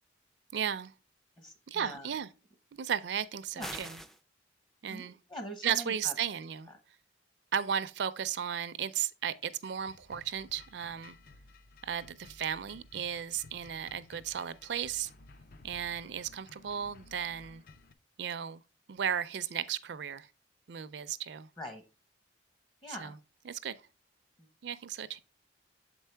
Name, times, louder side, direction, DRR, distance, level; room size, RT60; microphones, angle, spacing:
voice 1, 0.5-0.9 1.7-2.3 2.8-4.0 4.8-5.2 5.6-6.7 7.5-11.2 11.8-15.1 15.6-17.6 18.2-18.6 18.9-20.3 20.7-21.5 22.9-23.2 23.5-23.7 24.6-25.2, right 8 dB, 70° right, 0.4 m, -35 dB
voice 2, 1.4-2.1 3.5-3.8 4.9-6.1 21.6-21.8 22.8-23.2 24.4-24.5, equal, 30° left, 1.0 m, -43 dB
sound 1, 3.6-4.2, equal, ahead, 0.3 m, -42 dB
sound 2, 9.2-17.9, left 3 dB, 55° left, 0.5 m, -56 dB
7.1 x 4.6 x 3.3 m
head